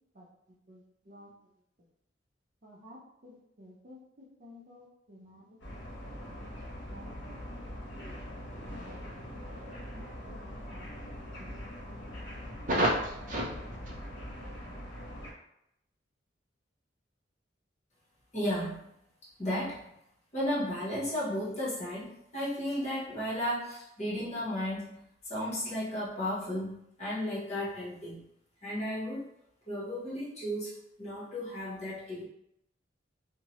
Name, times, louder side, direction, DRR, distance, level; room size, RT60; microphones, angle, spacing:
voice 1, 0.7-1.3 2.6-5.9 6.9-8.1 8.7-9.0 9.9-11.1 11.4-11.6 12.4-13.7, right 1 dB, 45° right, -4 dB, 0.6 m, -38 dB
sound 1, 5.6-15.3, equal, 75° left, 0.8 m, -43 dB
voice 2, 18.3-18.9 19.4-20.0 20.3-25.0 25.3-28.2 28.6-29.3 29.7-32.2, left 1 dB, 40° left, -8 dB, 1.1 m, -34 dB
2.8 x 2.1 x 2.9 m, 0.79 s
head